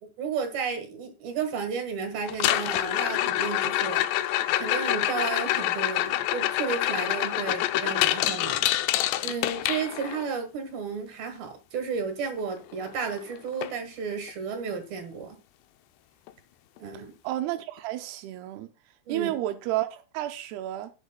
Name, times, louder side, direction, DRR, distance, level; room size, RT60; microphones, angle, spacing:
voice 1, 0.0-8.7 9.2-15.4 16.8-17.1 19.1-19.3, right 5 dB, 60° right, 3.0 m, -33 dB
sound 1, 2.3-10.3 12.5-12.6 12.9-13.2 13.6-13.7 14.3-14.4 16.3-16.4, left 14 dB, 85° left, 2.4 m, -26 dB
voice 2, 16.9-18.7 19.1-20.9, right 14 dB, 90° right, 2.3 m, -31 dB
18.0 x 6.6 x 2.2 m
omnidirectional pair, 5.5 m